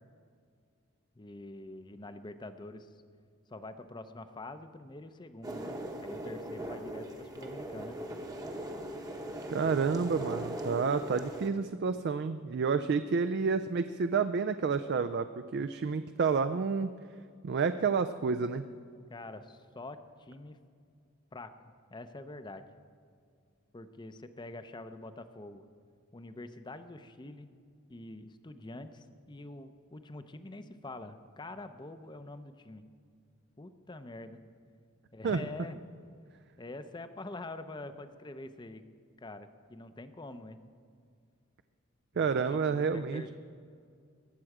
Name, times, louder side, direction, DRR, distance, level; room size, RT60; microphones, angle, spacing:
voice 1, 1.2-3.0 3.5-8.0 19.1-20.6 21.3-21.5 21.9-22.6 23.7-25.7 26.1-27.5 27.9-32.8 33.6-34.4 35.1-35.8 36.6-38.8 39.2-40.6 42.1-43.3, left 2 dB, 20° left, 10 dB, 0.6 m, -45 dB
sound 1, 5.4-11.5, right 1 dB, 20° right, 0.9 m, -40 dB
voice 2, 9.5-16.9 17.4-18.6 35.2-35.4 42.2-43.3, right 5 dB, 55° right, 10 dB, 0.4 m, -29 dB
20.5 x 7.7 x 4.8 m, 2.2 s
head